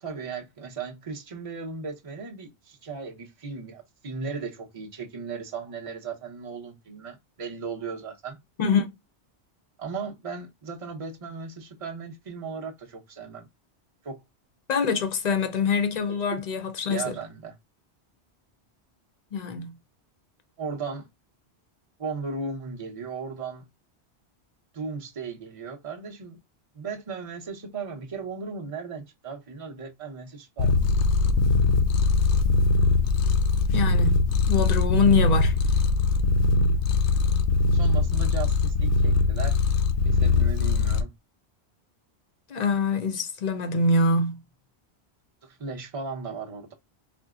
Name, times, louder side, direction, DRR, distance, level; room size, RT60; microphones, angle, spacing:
voice 1, 0.0-8.4 9.8-13.4 14.0-14.2 16.3-16.4 16.9-17.6 20.6-21.1 22.0-23.6 24.7-26.4 26.7-30.8 37.7-39.6 40.0-41.1 45.4-46.7, right 5 dB, 35° right, 0.8 m, -36 dB
voice 2, 8.6-8.9 14.7-17.2 19.3-19.7 33.7-35.5 42.5-44.4, left 4 dB, 45° left, 0.6 m, -24 dB
Purr, 30.6-41.0, left 3 dB, 85° left, 0.9 m, -21 dB
4.3 x 2.0 x 2.3 m
omnidirectional pair, 1.1 m